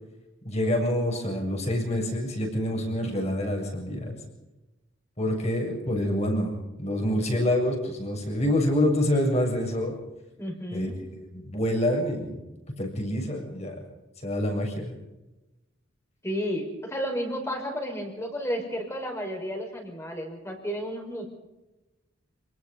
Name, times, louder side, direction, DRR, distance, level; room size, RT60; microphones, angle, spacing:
voice 1, 0.4-4.2 5.2-10.0 10.7-10.9 11.2-12.4 12.8-13.8 14.2-15.0, left 1 dB, 35° left, 2 dB, 7.4 m, -27 dB
voice 2, 10.4-10.9 16.2-21.3, equal, 15° left, 3 dB, 5.4 m, -32 dB
28.5 x 19.5 x 5.4 m, 1.0 s
head